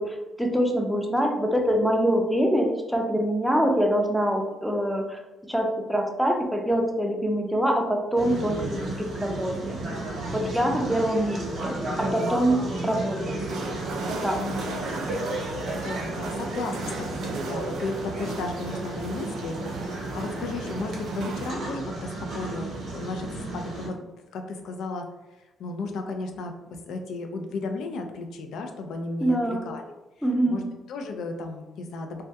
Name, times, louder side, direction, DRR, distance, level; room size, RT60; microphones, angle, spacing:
voice 1, 0.0-5.2 5.5-9.8 10.3-13.2 14.1-14.4 29.2-29.6 30.2-30.6, equal, ahead, 2 dB, 0.4 m, -25 dB
sound 1, 8.2-23.9, right 2 dB, 65° right, 0.7 m, -33 dB
voice 2, 10.4-11.0 14.4-15.0 15.7-24.0 24.3-25.1 25.6-29.9 30.5-32.2, left 3 dB, 80° left, 4 dB, 0.3 m, -34 dB
sound 2, 13.5-21.5, right 3 dB, 85° right, 0.3 m, -36 dB
2.2 x 2.2 x 2.7 m, 1.0 s
cardioid pair, 90°, 0 cm